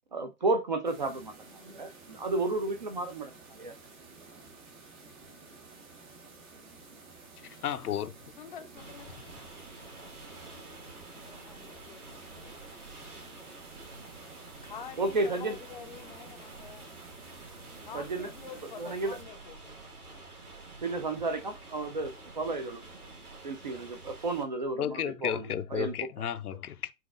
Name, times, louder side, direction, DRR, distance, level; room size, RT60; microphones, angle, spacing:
voice 1, 0.1-3.3 3.6-3.7 15.0-15.6 17.9-18.3 18.6-19.2 20.8-22.8 23.4-26.3, right 3 dB, 35° right, 0.4 m, -32 dB
sound 1, 0.9-19.2, right 3 dB, 55° right, 1.5 m, -52 dB
voice 2, 4.9-5.4 8.4-9.1 9.7-9.9 11.0-12.6 14.6-16.9 17.8-19.8, left 7 dB, 35° left, 0.5 m, -47 dB
voice 3, 7.4-8.1 24.8-26.9, left 9 dB, 80° left, 0.6 m, -33 dB
sound 2, 8.8-24.4, right 2 dB, 75° right, 2.1 m, -49 dB
5.5 x 2.4 x 2.5 m
hypercardioid pair, 135°, 45 cm